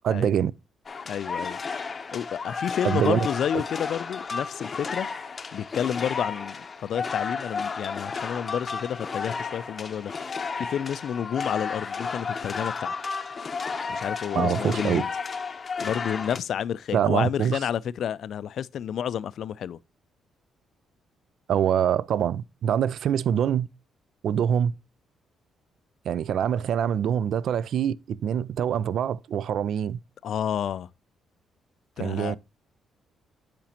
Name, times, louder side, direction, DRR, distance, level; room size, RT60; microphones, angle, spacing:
voice 1, 0.0-0.5 2.8-3.3 14.3-15.0 16.9-17.6 21.5-23.7 24.2-24.7 26.1-30.0 32.0-32.4, right 9 dB, 70° right, 0.3 m, -24 dB
sound 1, 0.9-16.4, left 5 dB, 35° left, 0.7 m, -33 dB
voice 2, 1.1-1.6 2.1-5.1 5.5-12.9 13.9-15.1 15.8-19.8 30.2-30.9 32.0-32.4, left 9 dB, 65° left, 0.3 m, -30 dB
8.7 x 5.1 x 2.8 m
cardioid pair, 90°, 0 cm